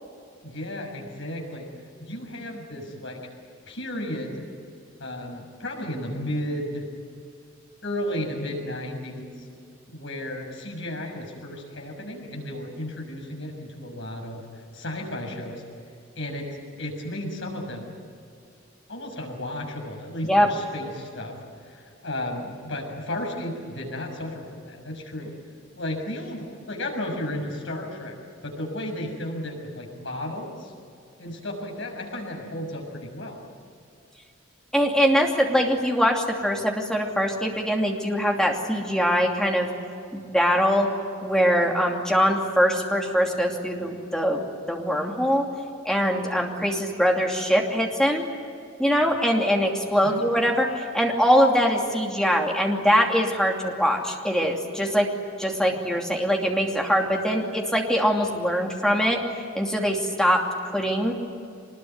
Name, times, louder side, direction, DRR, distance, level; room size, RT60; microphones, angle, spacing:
voice 1, 0.4-1.7 2.0-3.2 3.7-4.5 5.0-6.9 7.8-9.3 9.9-14.4 14.7-15.6 16.2-17.9 18.9-21.4 21.7-25.3 25.7-28.2 28.4-30.7 31.2-33.4 50.0-50.2 55.7-55.8, left 1 dB, 65° left, 1 dB, 6.6 m, -33 dB
voice 2, 34.7-39.7 40.1-40.9 41.2-44.4 44.7-45.5 45.8-48.3 48.8-55.1 55.4-59.2 59.5-60.4 60.7-61.1, equal, 5° left, 0 dB, 2.8 m, -22 dB
24.5 x 21.0 x 9.4 m, 2.4 s
head